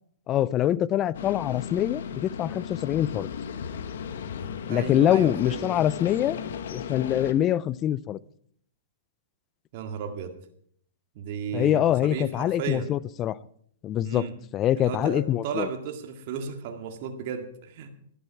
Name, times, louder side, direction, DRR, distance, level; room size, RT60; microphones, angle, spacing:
voice 1, 0.3-3.3 4.7-6.4 6.7-8.2 11.5-13.4 13.8-14.3 14.5-15.7, left 12 dB, 30° left, 0.5 m, -24 dB
sound 1, 1.1-7.3, left 7 dB, 70° left, 1.4 m, -35 dB
voice 2, 4.7-5.7 9.7-10.3 11.2-12.9 14.0-14.3 14.8-17.9, right 6 dB, 50° right, 2.0 m, -34 dB
11.5 x 11.5 x 5.8 m
hypercardioid pair, 135°, 0 cm